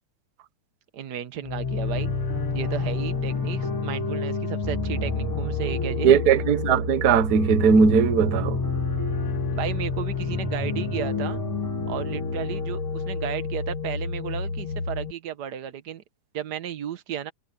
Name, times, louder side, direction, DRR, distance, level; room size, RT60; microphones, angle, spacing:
voice 1, 0.9-2.1 2.5-6.2 9.5-11.4 11.9-16.0 16.3-17.3, right 10 dB, 75° right, 0.9 m, -33 dB
sound 1, 1.4-15.1, left 4 dB, 50° left, 2.4 m, -30 dB
sound 2, 2.0-13.7, left 1 dB, 5° left, 4.0 m, -33 dB
voice 2, 6.0-8.6, right 6 dB, 55° right, 1.0 m, -19 dB
omnidirectional pair, 3.4 m